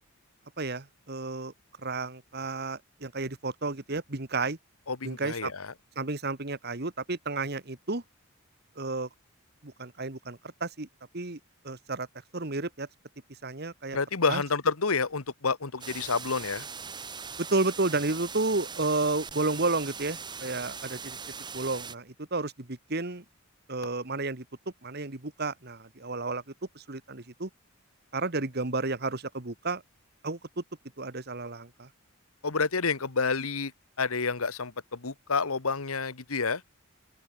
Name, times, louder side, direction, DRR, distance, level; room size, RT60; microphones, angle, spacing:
voice 1, 0.6-1.5 1.8-4.6 5.0-5.5 5.9-8.0 8.8-9.1 9.6-10.9 11.1-11.4 11.6-12.1 12.3-12.9 13.4-14.0 14.3-14.4 17.4-21.2 21.5-23.2 23.7-24.4 24.8-26.4 26.7-27.5 28.1-29.8 30.2-30.6 31.0-31.9, right 3 dB, 50° right, 1.7 m, -32 dB
voice 2, 4.9-5.7 13.9-16.7 32.4-33.7 34.0-36.6, left 4 dB, 85° left, 1.4 m, -29 dB
sound 1, 15.8-22.0, right 6 dB, 20° right, 1.9 m, -40 dB
head